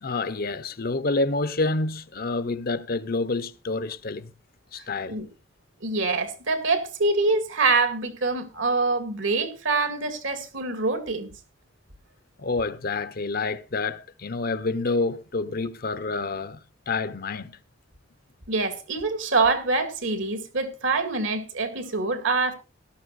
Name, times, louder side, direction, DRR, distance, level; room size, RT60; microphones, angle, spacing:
voice 1, 0.0-4.3 4.7-5.2 12.4-16.6 16.9-17.6, left 3 dB, 50° left, 0.8 m, -28 dB
voice 2, 5.8-11.3 18.5-22.5, right 3 dB, 70° right, 2.3 m, -25 dB
17.5 x 13.0 x 2.5 m
head